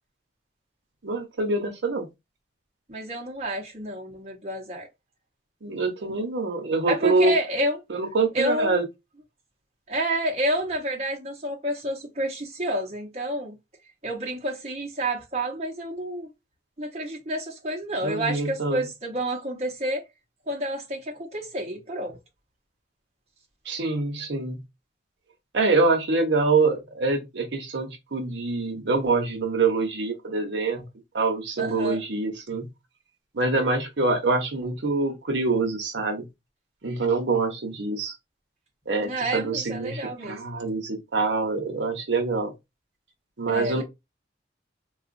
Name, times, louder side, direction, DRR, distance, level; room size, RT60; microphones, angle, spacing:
voice 1, 1.0-2.1 5.6-7.3 7.9-8.8 18.0-18.8 23.7-24.6 25.5-30.9 31.1-32.7 33.3-36.3 36.8-38.2 38.9-42.5 43.4-43.8, right 3 dB, 70° right, 0.8 m, -25 dB
voice 2, 2.9-4.9 6.9-7.8 8.3-8.8 9.9-13.5 14.0-16.3 16.8-20.0 20.5-22.2 31.6-32.0 39.0-40.4 43.5-43.8, right 1 dB, 35° right, 0.8 m, -29 dB
3.8 x 2.3 x 2.5 m
head